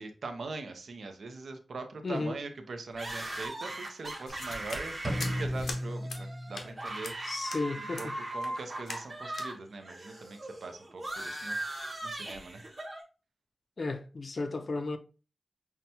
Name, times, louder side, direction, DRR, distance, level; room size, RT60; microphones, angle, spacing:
voice 1, 0.0-7.4 7.8-8.1 8.3-11.6 12.0-12.7, right 3 dB, 70° right, 0.6 m, -42 dB
voice 2, 2.0-2.4 7.3-8.2 13.8-15.0, left 3 dB, 40° left, 0.4 m, -34 dB
sound 1, 3.0-9.5 9.8-13.0, right 1 dB, 30° right, 0.9 m, -39 dB
sound 2, 4.3-5.8 6.1-6.2 6.5-6.7 7.0-7.2 7.5-7.6 7.9-8.1 8.4-8.6 8.9-9.1 9.3-9.5, left 3 dB, 85° left, 0.7 m, -41 dB
sound 3, 5.0-7.0, equal, ahead, 0.8 m, -35 dB
5.7 x 2.2 x 2.7 m
wide cardioid pair, 150°, 0 cm